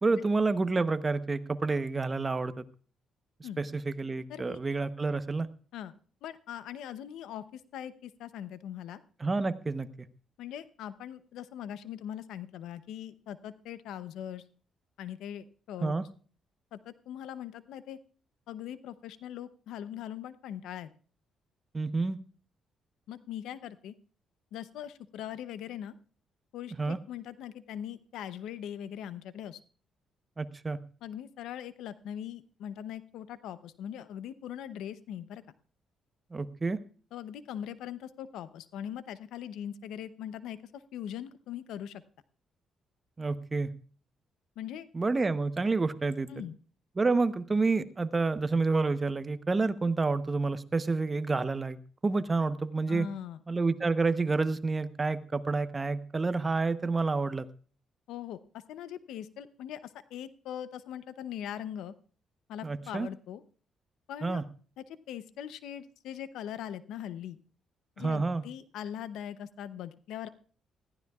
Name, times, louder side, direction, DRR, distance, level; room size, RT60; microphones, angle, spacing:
voice 1, 0.0-2.6 3.6-5.5 9.2-9.9 15.8-16.0 21.7-22.2 26.8-27.0 30.4-30.8 36.3-36.8 43.2-43.7 44.9-46.3 47.0-51.8 52.0-53.1 53.5-57.5 62.6-63.1 64.2-64.4 68.0-68.4, right 3 dB, 25° right, 11 dB, 0.9 m, -29 dB
voice 2, 6.2-9.0 10.4-14.4 15.0-15.9 16.7-18.0 18.5-20.9 23.1-23.9 24.5-25.9 26.5-29.6 31.0-35.4 37.1-42.0 44.6-44.9 46.3-46.5 52.9-53.4 58.1-61.9 62.5-63.4 64.1-64.4 64.8-67.4 68.0-70.3, left 10 dB, 85° left, 14 dB, 0.7 m, -41 dB
20.0 x 14.5 x 2.4 m, 0.42 s
cardioid pair, 90°, 0 cm